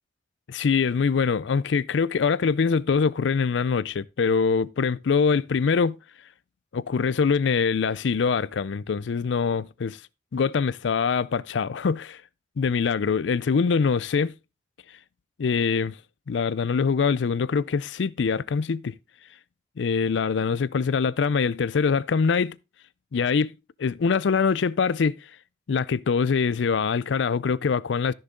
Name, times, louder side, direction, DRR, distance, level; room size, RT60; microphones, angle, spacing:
voice 1, 0.5-6.0 6.7-10.0 10.3-12.2 12.6-14.3 15.4-16.0 16.3-19.0 19.8-22.6 23.1-23.5 23.8-25.2 25.7-28.1, left 5 dB, 85° left, 0.4 m, -24 dB
13.0 x 6.7 x 3.7 m
head